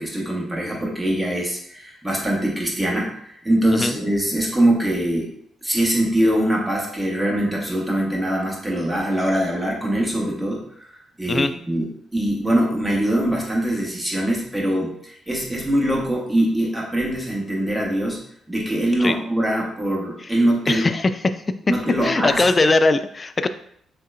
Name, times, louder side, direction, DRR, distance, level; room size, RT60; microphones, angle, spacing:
voice 1, 0.0-5.3 5.6-20.9 21.7-22.4, right 1 dB, 15° right, -2 dB, 1.3 m, -23 dB
voice 2, 20.7-21.1 22.0-23.5, left 3 dB, 30° left, 10 dB, 0.3 m, -20 dB
6.1 x 2.2 x 2.6 m, 0.68 s
figure-of-eight pair, 40°, 0 cm